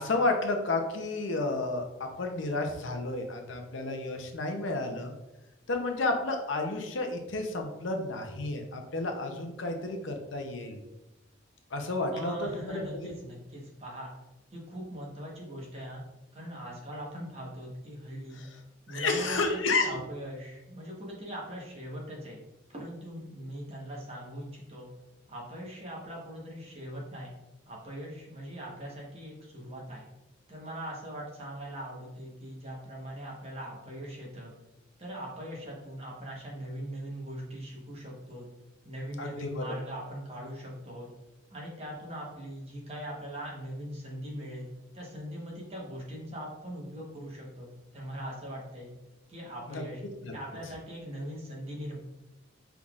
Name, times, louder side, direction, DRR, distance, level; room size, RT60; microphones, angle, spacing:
voice 1, 0.0-5.1 5.7-10.8 11.7-13.1 18.4-18.5 18.9-19.9 39.2-39.6 49.7-49.8 50.2-50.3, left 2 dB, 80° left, 4 dB, 0.7 m, -31 dB
voice 2, 12.1-14.1 14.5-16.0 16.3-18.4 18.9-22.4 22.7-24.9 25.3-27.3 27.7-30.1 30.5-34.5 35.0-38.5 38.8-41.1 41.5-44.7 44.9-48.9 49.3-50.0 50.3-52.0, equal, 30° right, -3 dB, 1.1 m, -41 dB
5.4 x 3.5 x 2.4 m, 0.98 s
head